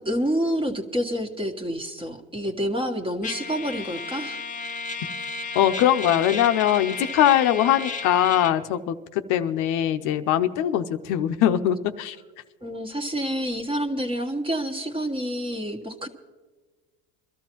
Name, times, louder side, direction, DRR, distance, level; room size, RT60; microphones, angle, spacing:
voice 1, 0.0-4.4 12.6-16.1, equal, 15° right, 5 dB, 1.3 m, -28 dB
Trumpet, 3.2-8.6, left 4 dB, 25° left, 0.6 m, -33 dB
voice 2, 5.5-12.2, left 11 dB, 65° left, 9 dB, 0.8 m, -22 dB
23.5 x 13.0 x 3.0 m, 1.3 s
supercardioid pair, 110°, 33 cm